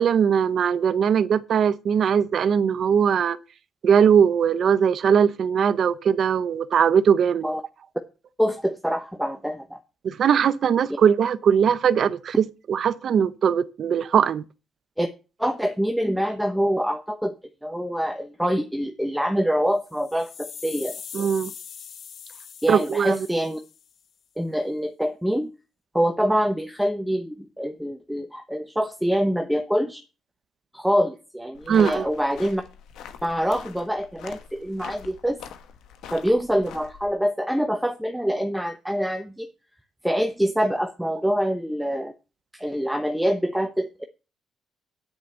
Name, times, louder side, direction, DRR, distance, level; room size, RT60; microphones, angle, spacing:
voice 1, 0.0-3.4 3.8-7.5 10.0-14.4 21.1-21.5 22.7-23.2 31.7-32.1, right 7 dB, 60° right, 0.7 m, -20 dB
voice 2, 8.4-9.8 15.0-15.1 15.4-17.3 17.6-20.9 22.6-23.6 24.4-25.5 25.9-30.0 30.7-32.6 33.2-35.4 36.1-39.5 40.0-42.1 42.5-44.0, equal, 5° right, 0.9 m, -25 dB
sound 1, 19.8-24.0, left 8 dB, 60° left, 0.9 m, -41 dB
sound 2, 31.5-37.1, left 8 dB, 85° left, 1.1 m, -43 dB
9.5 x 5.1 x 7.7 m
cardioid pair, 90°, 0 cm